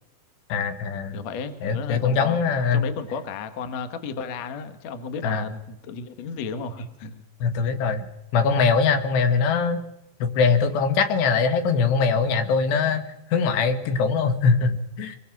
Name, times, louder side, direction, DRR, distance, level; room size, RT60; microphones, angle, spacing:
voice 1, 0.5-1.2 1.6-2.8 5.2-5.4 7.4-8.1 8.3-9.8 10.2-13.0 13.3-15.2, left 5 dB, 80° left, 8 dB, 3.7 m, -22 dB
voice 2, 1.1-2.4 2.7-7.2, left 5 dB, 55° left, 9 dB, 2.2 m, -33 dB
23.5 x 22.5 x 6.1 m, 0.90 s
omnidirectional pair, 4.9 m